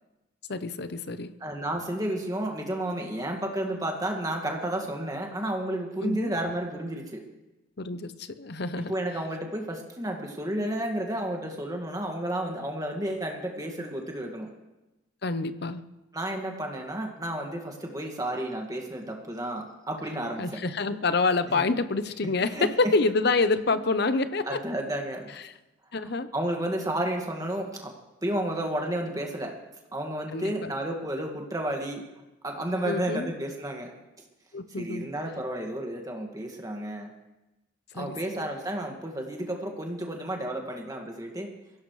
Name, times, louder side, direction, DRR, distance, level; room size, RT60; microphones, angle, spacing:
voice 1, 0.5-1.4 6.0-6.3 7.8-8.9 15.2-15.8 20.4-24.6 25.4-25.5 25.9-26.3 30.3-30.7 32.9-33.3 34.5-35.1 37.9-38.5, left 3 dB, 50° left, 12 dB, 0.7 m, -27 dB
voice 2, 1.4-7.2 8.9-14.5 16.1-20.6 21.5-21.6 22.4-22.7 23.7-23.8 24.5-25.3 26.0-27.9 28.2-29.5 29.9-32.0 32.4-33.9 34.8-37.1 38.0-41.5, right 1 dB, 15° right, 2 dB, 1.9 m, -32 dB
23.0 x 16.5 x 3.2 m, 1.0 s
head